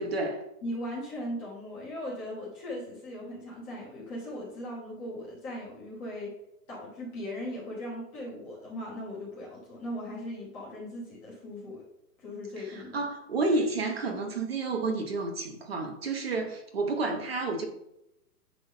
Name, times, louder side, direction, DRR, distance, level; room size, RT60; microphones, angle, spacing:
voice 1, 0.0-0.4 12.6-17.7, right 3 dB, 40° right, 4 dB, 1.0 m, -30 dB
voice 2, 0.6-6.3 6.7-11.8 12.2-13.0, left 1 dB, 10° left, -6 dB, 1.1 m, -38 dB
9.7 x 3.8 x 5.5 m, 0.84 s
hypercardioid pair, 180°, 48 cm